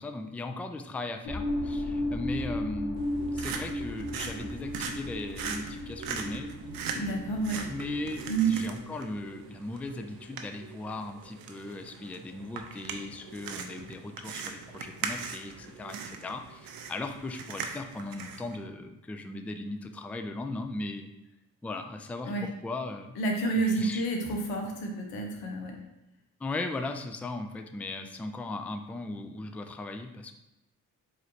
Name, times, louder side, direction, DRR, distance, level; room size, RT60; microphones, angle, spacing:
voice 1, 0.0-6.6 7.7-21.1 21.6-23.2 23.5-24.1 26.4-30.3, left 2 dB, 5° left, 6 dB, 0.3 m, -38 dB
sound 1, 1.2-8.8, left 1 dB, 55° left, 1.5 m, -35 dB
sound 2, 3.0-18.6, right 6 dB, 70° right, 0.6 m, -40 dB
voice 2, 7.0-7.7 8.3-8.6 22.2-22.5 23.2-25.8, right 3 dB, 90° left, 1 dB, 0.9 m, -29 dB
4.8 x 3.2 x 2.8 m, 0.94 s
supercardioid pair, 70°, 36 cm